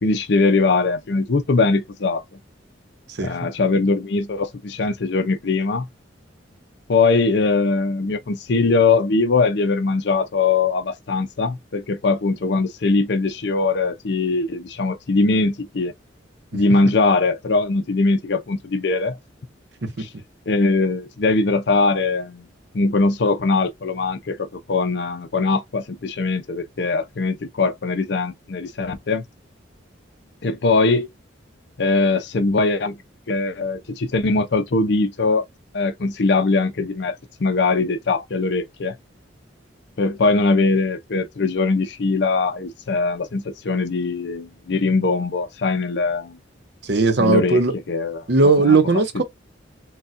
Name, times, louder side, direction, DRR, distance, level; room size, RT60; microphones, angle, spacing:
voice 1, 0.0-2.2 3.2-5.9 6.9-15.9 16.5-19.2 20.0-20.1 20.5-22.5 22.7-29.2 30.4-31.1 31.8-33.0 33.3-35.4 35.7-39.0 40.0-46.4 47.2-47.6 47.9-48.2 48.6-48.8 49.1-49.2, left 3 dB, 60° left, 0.5 m, -21 dB
voice 2, 46.8-47.7 48.3-49.2, right 3 dB, 60° right, 0.7 m, -17 dB
4.0 x 2.3 x 2.5 m
head